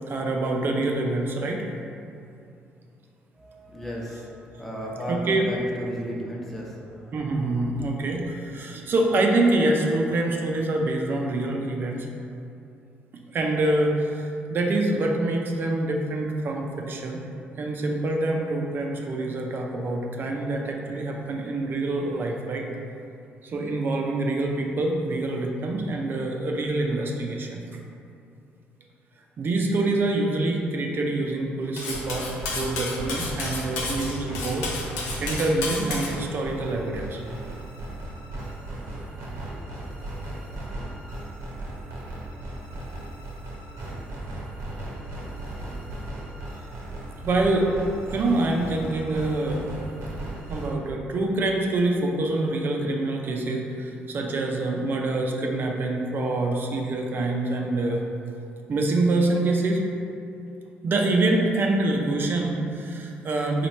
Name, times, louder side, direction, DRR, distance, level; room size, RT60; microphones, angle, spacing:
voice 1, 0.1-1.6 5.1-5.5 7.1-12.1 13.3-17.2 17.6-22.7 23.4-27.6 29.4-32.3 32.5-34.7 35.2-37.2 47.2-47.7 48.1-49.6 50.5-58.0 58.7-59.8 60.8-63.7, right 2 dB, 50° right, 1 dB, 0.5 m, -25 dB
voice 2, 3.4-7.2 7.5-7.9, equal, 5° left, -4 dB, 0.8 m, -35 dB
Cutlery silverware, 31.8-36.1, left 3 dB, 90° left, 0.6 m, -31 dB
sound 1, 31.9-50.7, right 1 dB, 75° right, 0.8 m, -36 dB
3.0 x 2.4 x 4.1 m, 2.6 s
supercardioid pair, 65°, 5 cm